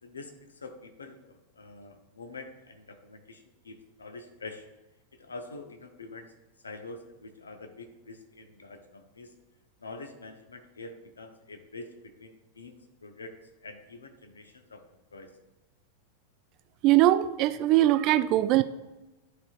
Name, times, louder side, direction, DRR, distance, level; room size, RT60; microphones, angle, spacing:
voice 1, 0.0-4.7 5.1-6.3 6.6-9.3 9.8-13.3 13.6-14.9 15.1-15.3, left 3 dB, 75° left, 6 dB, 0.7 m, -46 dB
voice 2, 16.8-18.6, right 14 dB, 40° right, 12 dB, 0.3 m, -21 dB
11.0 x 4.3 x 2.4 m, 1.1 s
figure-of-eight pair, 90°, 0 cm